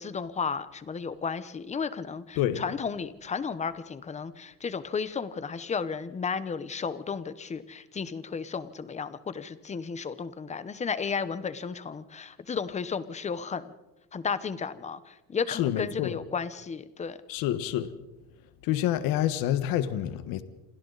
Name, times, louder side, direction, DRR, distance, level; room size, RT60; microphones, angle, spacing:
voice 1, 0.0-13.7 14.1-17.2, left 5 dB, 20° left, 1.0 m, -33 dB
voice 2, 15.5-16.2 17.3-17.9 18.6-20.4, left 12 dB, 65° left, 1.5 m, -27 dB
28.0 x 27.0 x 4.1 m
cardioid pair, 155°, 38 cm